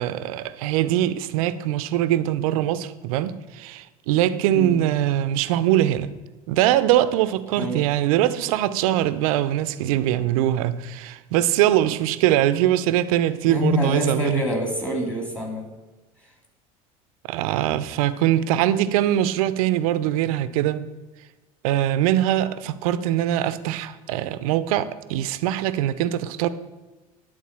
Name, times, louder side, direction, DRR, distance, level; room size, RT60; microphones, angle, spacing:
voice 1, 0.0-6.1 6.5-14.4 17.3-20.8 21.6-26.5, right 12 dB, 75° right, 0.7 m, -22 dB
voice 2, 13.5-15.7 16.2-16.3, equal, 5° left, 3.3 m, -26 dB
11.5 x 4.0 x 7.5 m
hypercardioid pair, 90°, 18 cm